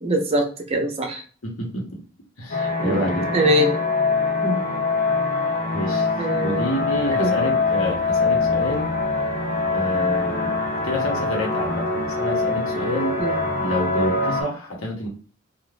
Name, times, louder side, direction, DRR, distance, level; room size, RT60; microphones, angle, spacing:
voice 1, 0.0-1.2 2.8-3.7 4.4-4.6 6.2-6.7 7.2-7.3 13.2-13.4, equal, 30° right, 2 dB, 0.6 m, -23 dB
voice 2, 1.4-2.0 2.4-3.3 5.7-6.1 6.4-8.9 9.7-10.5 10.8-13.1 13.6-15.1, left 1 dB, 80° left, -1 dB, 1.1 m, -28 dB
sound 1, 2.5-14.4, left 3 dB, 45° left, 0.6 m, -23 dB
2.5 x 2.4 x 3.2 m, 0.40 s
head